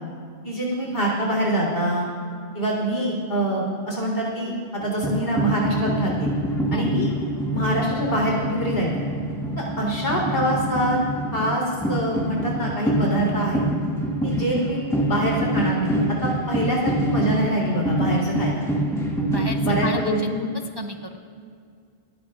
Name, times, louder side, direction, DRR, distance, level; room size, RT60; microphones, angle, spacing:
voice 1, 0.4-2.1 2.5-6.3 6.7-7.1 7.5-9.1 9.6-11.0 11.3-11.6 11.9-13.6 14.2-15.9 16.5-18.6 19.6-20.5, right 1 dB, 80° left, -2 dB, 3.9 m, -25 dB
sound 1, 4.8-19.9, right 1 dB, 5° left, 1.9 m, -25 dB
voice 2, 19.3-20.3 20.8-21.2, left 1 dB, 30° right, 4 dB, 0.5 m, -33 dB
29.0 x 13.5 x 2.4 m, 2.2 s
omnidirectional pair, 1.1 m